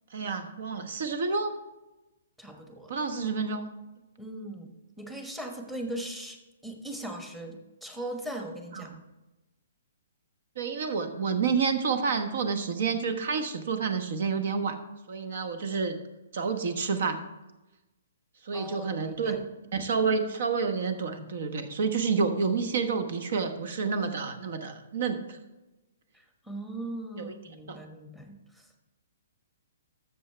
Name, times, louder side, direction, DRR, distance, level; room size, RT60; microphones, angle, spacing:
voice 1, 0.1-1.5 2.9-3.7 8.7-9.0 10.6-14.8 15.1-15.9 16.3-17.2 18.4-19.4 19.7-25.4 27.2-27.3 27.7-27.8, right 5 dB, 65° right, 9 dB, 1.1 m, -29 dB
voice 2, 2.4-2.9 4.2-8.9 18.5-19.4 26.1-28.9, right 1 dB, 5° right, 3 dB, 1.2 m, -39 dB
13.0 x 7.2 x 3.3 m, 1.0 s
hypercardioid pair, 135°, 0 cm